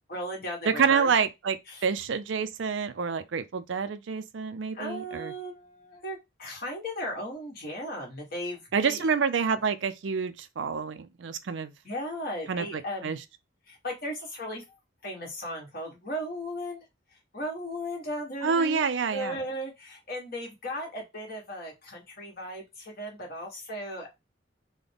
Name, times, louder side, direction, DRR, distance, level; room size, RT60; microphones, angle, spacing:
voice 1, 0.1-1.1 1.7-1.8 4.7-9.1 11.8-13.2 13.7-14.6 15.0-16.8 17.3-18.8 19.1-24.1, equal, 50° left, 1.6 m, -36 dB
voice 2, 0.7-5.3 8.7-11.7 12.5-13.2 18.4-19.4, right 6 dB, 75° right, 0.5 m, -28 dB
3.9 x 2.2 x 3.4 m
head